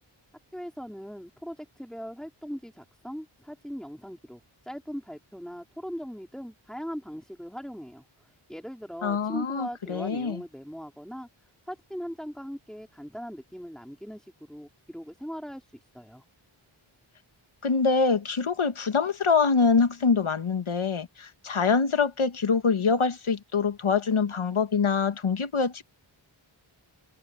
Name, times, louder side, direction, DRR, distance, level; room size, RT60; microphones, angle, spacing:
voice 1, 0.5-11.3 11.7-16.2, equal, ahead, 3.8 m, -40 dB
voice 2, 9.0-10.4 17.6-25.8, left 5 dB, 75° left, 1.6 m, -25 dB
wide cardioid pair, 50°, 50 cm